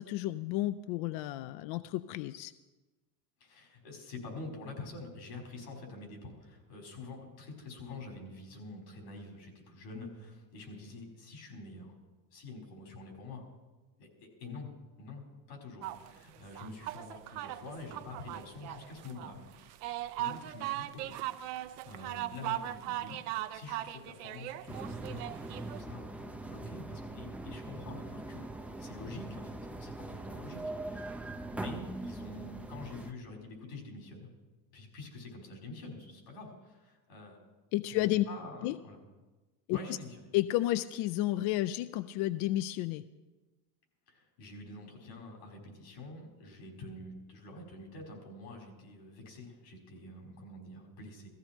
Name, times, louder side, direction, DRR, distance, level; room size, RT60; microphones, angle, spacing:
voice 1, 0.0-2.5 37.7-38.2 38.6-38.8 39.7-39.8 40.3-43.0, left 15 dB, 55° left, 13 dB, 0.5 m, -31 dB
voice 2, 3.4-11.9 12.3-13.4 14.0-14.7 15.0-19.8 20.2-21.1 21.8-23.2 23.5-28.5 28.8-31.2 31.5-34.3 34.7-37.4 37.9-39.0 39.7-40.3 44.1-51.3, left 2 dB, 85° left, 1 dB, 5.0 m, -47 dB
sound 1, 15.8-25.8, right 14 dB, 75° right, 0.8 m, -39 dB
sound 2, 24.7-33.1, right 2 dB, 5° right, 0.5 m, -42 dB
16.0 x 15.0 x 4.5 m, 1.2 s
supercardioid pair, 125°, 48 cm